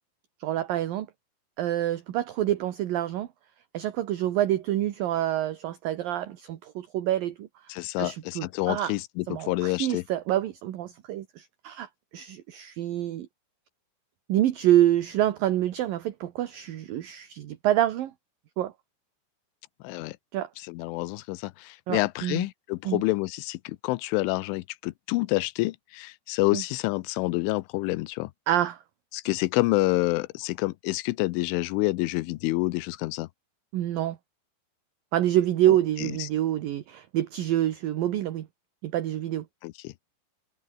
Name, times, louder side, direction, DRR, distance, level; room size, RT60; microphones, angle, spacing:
voice 1, 0.4-1.1 1.6-3.3 3.7-7.5 8.0-8.9 9.3-13.3 14.3-18.1 18.6-18.7 20.3-20.5 21.9-22.4 22.8-23.0 26.5-26.6 28.5-28.8 33.7-34.2 35.1-38.5 38.8-39.5, right 12 dB, 65° right, 2.6 m, -27 dB
voice 2, 7.7-10.0 19.8-20.2 20.6-28.3 29.1-33.3 35.7-36.3 39.6-39.9, left 20 dB, 90° left, 3.3 m, -28 dB
omnidirectional pair, 5.4 m